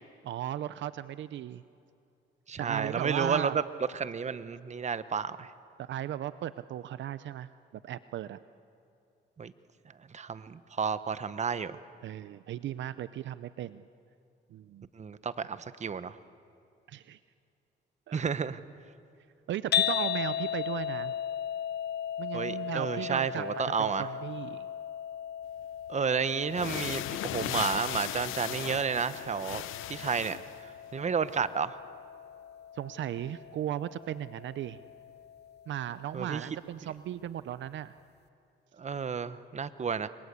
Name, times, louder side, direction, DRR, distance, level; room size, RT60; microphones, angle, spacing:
voice 1, 0.2-1.6 2.6-3.6 5.8-7.5 7.8-8.4 12.0-13.8 14.5-14.9 16.9-17.2 18.1-18.3 19.5-21.1 22.2-24.7 32.7-34.8 35.7-37.9, right 11 dB, 70° right, 14 dB, 0.6 m, -36 dB
voice 2, 2.5-3.6 3.9-5.5 9.4-9.5 10.1-11.8 15.0-16.2 18.1-18.6 22.3-24.1 25.9-30.4 30.9-31.8 36.1-36.5 38.8-40.1, right 6 dB, 35° right, 13 dB, 1.0 m, -31 dB
sound 1, 19.7-35.9, left 10 dB, 55° left, 0.8 m, -37 dB
sound 2, 25.9-26.0 26.4-30.6, left 14 dB, 90° left, 0.8 m, -37 dB
29.0 x 22.5 x 8.3 m, 2.6 s
cardioid pair, 90°, 20 cm